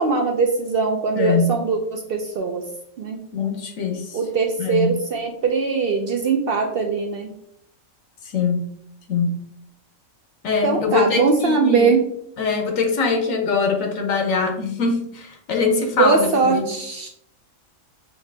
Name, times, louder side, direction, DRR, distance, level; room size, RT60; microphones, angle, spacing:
voice 1, 0.0-2.6 3.0-3.2 4.1-7.3 10.6-12.0 16.0-17.1, right 4 dB, 70° right, 4 dB, 0.5 m, -21 dB
voice 2, 3.3-4.2 4.6-4.9 8.2-8.7 9.1-9.3 10.4-11.9 12.4-16.7, left 5 dB, 70° left, 3 dB, 1.1 m, -22 dB
5.8 x 2.7 x 3.3 m, 0.72 s
omnidirectional pair, 1.5 m